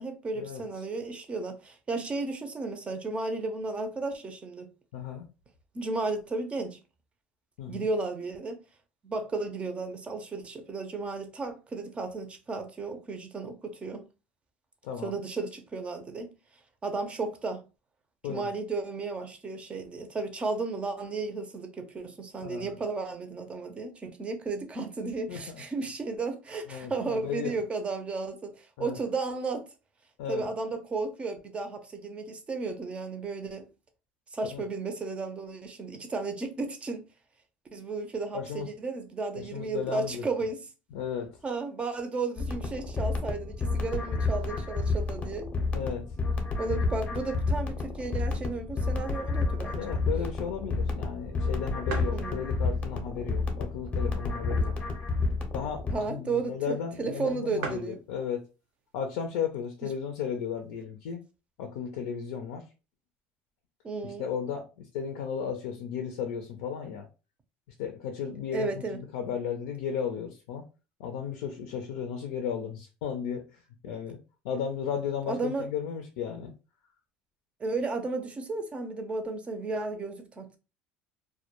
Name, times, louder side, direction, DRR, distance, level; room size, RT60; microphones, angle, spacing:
voice 1, 0.0-4.7 5.7-6.8 7.7-8.6 9.0-14.0 15.0-16.3 16.8-17.6 18.3-29.7 30.3-33.7 34.3-37.0 37.7-40.6 41.4-45.5 46.6-50.0 52.1-52.5 55.9-58.0 63.8-64.2 68.5-69.0 73.9-74.0 75.3-75.7 77.6-80.6, right 3 dB, 25° right, 0.5 m, -34 dB
voice 2, 4.9-5.3 7.6-7.9 14.8-15.1 18.2-18.5 22.4-22.7 25.3-25.6 26.7-27.5 28.8-29.0 30.2-30.5 34.5-34.6 38.3-38.7 39.4-40.2 40.9-41.3 45.7-46.1 49.8-54.7 55.5-58.4 58.9-61.2 61.6-62.6 64.0-67.1 67.8-70.6 71.0-74.2 74.4-76.5, left 7 dB, 90° left, 0.4 m, -35 dB
sound 1, 42.4-55.9, left 3 dB, 30° left, 0.6 m, -30 dB
sound 2, 51.0-51.1 51.4-51.5 51.9-52.2 52.9-53.0 53.8-54.9 55.3-55.4 55.6-55.8 56.6-56.7 56.9-57.0 57.3-57.4 57.6-58.0 58.9-59.2 59.8-59.9 60.0-60.8, right 5 dB, 80° right, 0.6 m, -40 dB
2.1 x 2.1 x 2.8 m
supercardioid pair, 110°, 5 cm